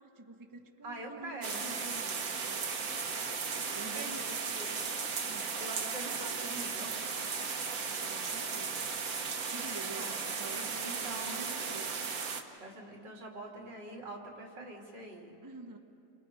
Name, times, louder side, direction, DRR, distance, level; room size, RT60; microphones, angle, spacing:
voice 1, 0.0-3.2 3.7-4.4 5.3-5.6 7.9-8.8 9.5-11.9 15.4-15.8, right 2 dB, 15° right, 3 dB, 1.0 m, -48 dB
voice 2, 0.8-1.7 3.5-4.2 4.5-4.7 5.6-7.0 10.0-11.5 12.6-15.4, right 2 dB, 90° right, -1 dB, 3.7 m, -45 dB
sound 1, 1.4-12.4, right 5 dB, 55° right, 1.5 m, -36 dB
29.5 x 25.0 x 4.9 m, 2.8 s
omnidirectional pair, 1.9 m